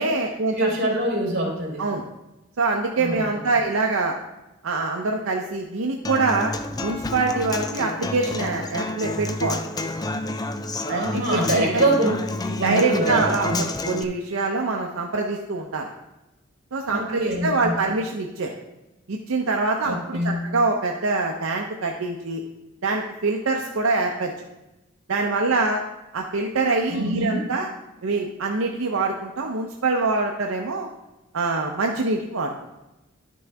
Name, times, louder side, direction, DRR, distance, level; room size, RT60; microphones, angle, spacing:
voice 1, 0.0-0.7 1.8-2.0 2.6-4.2 4.6-6.5 6.8-9.6 10.9-11.8 12.6-15.9 16.7-18.5 19.1-22.4 22.8-24.3 25.1-25.8 26.1-27.7 28.0-30.9 31.3-32.5, right 3 dB, 85° right, 2 dB, 0.7 m, -24 dB
voice 2, 0.6-1.8 3.0-3.3 10.8-12.1 12.4-13.6 16.9-17.7 19.8-20.4 26.9-27.4, right 1 dB, 55° right, -3 dB, 3.4 m, -24 dB
Human voice / Acoustic guitar, 6.0-14.0, left 2 dB, 20° left, 0.4 m, -29 dB
11.0 x 6.2 x 3.4 m, 0.98 s
head